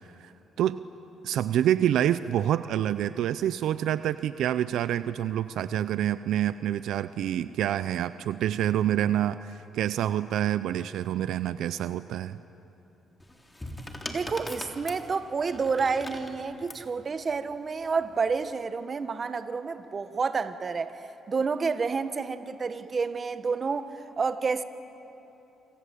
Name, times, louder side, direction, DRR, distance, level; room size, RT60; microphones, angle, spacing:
voice 1, 1.2-12.4, right 11 dB, 80° right, 13 dB, 0.6 m, -27 dB
sound 1, 13.2-16.9 17.9-18.3, left 1 dB, 15° left, 3.4 m, -40 dB
voice 2, 14.1-24.6, right 5 dB, 40° right, 10 dB, 1.4 m, -29 dB
27.5 x 25.5 x 8.5 m, 3.0 s
cardioid pair, 90°, 0 cm